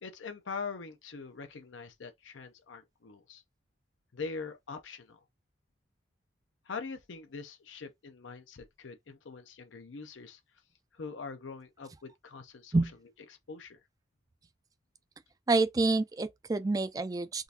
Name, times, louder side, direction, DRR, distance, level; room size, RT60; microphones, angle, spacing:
voice 1, 0.0-3.4 4.1-5.2 6.7-10.4 10.9-12.8 13.3-13.8, left 4 dB, 90° left, 0.6 m, -43 dB
voice 2, 15.5-17.4, right 3 dB, 20° right, 0.3 m, -28 dB
3.7 x 2.5 x 2.7 m
head